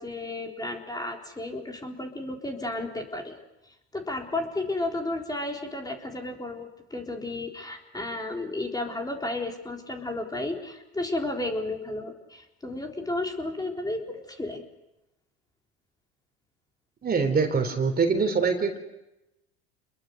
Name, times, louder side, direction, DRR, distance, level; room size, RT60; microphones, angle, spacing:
voice 1, 0.0-3.4 3.9-14.6, left 2 dB, 10° left, 2 dB, 3.9 m, -33 dB
voice 2, 17.0-18.8, right 5 dB, 30° right, 6 dB, 3.6 m, -24 dB
28.5 x 22.0 x 6.6 m, 0.92 s
hypercardioid pair, 80°, 32 cm